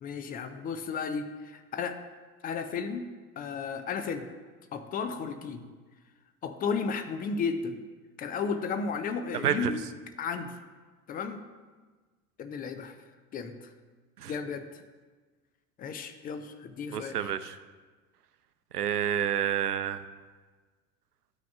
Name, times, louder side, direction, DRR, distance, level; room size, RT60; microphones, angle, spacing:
voice 1, 0.0-2.0 2.4-3.0 3.4-4.3 4.7-5.6 6.4-7.8 8.2-9.8 10.2-10.6 11.1-11.4 12.4-13.0 13.3-13.5 14.3-14.7 15.8-17.2, left 5 dB, 20° left, 8 dB, 0.5 m, -33 dB
voice 2, 9.3-9.7 14.2-14.4 16.9-17.6 18.7-20.0, right 9 dB, 80° right, 11 dB, 0.6 m, -29 dB
12.0 x 5.8 x 2.4 m, 1.4 s
figure-of-eight pair, 75°, 46 cm